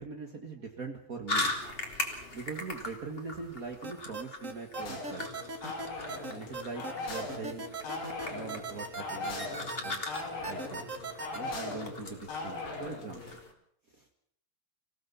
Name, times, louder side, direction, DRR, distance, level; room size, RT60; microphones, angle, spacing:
voice 1, 0.0-1.5 2.3-5.3 5.9-7.7 8.3-10.0 10.4-10.9 11.3-13.4 13.9-14.3, right 4 dB, 50° right, 3 dB, 1.0 m, -42 dB
sound 1, 1.3-13.5, left 2 dB, 15° left, 2.5 m, -40 dB
sound 2, 3.8-11.4, right 3 dB, 25° right, 2.0 m, -39 dB
sound 3, 4.7-13.4, left 3 dB, 85° left, 6.7 m, -40 dB
26.5 x 17.0 x 7.0 m, 0.66 s
omnidirectional pair, 4.5 m